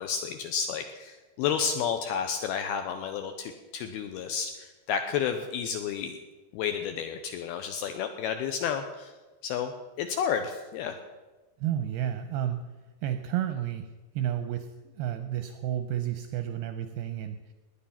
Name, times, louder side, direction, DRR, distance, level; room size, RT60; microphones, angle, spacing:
voice 1, 0.0-6.2 6.5-9.1 9.4-9.7 10.0-11.0, left 7 dB, 80° left, 7 dB, 2.3 m, -31 dB
voice 2, 11.6-12.6 13.0-13.9 14.1-17.4, right 11 dB, 80° right, 8 dB, 2.3 m, -31 dB
19.0 x 10.0 x 5.7 m, 1.2 s
omnidirectional pair, 5.2 m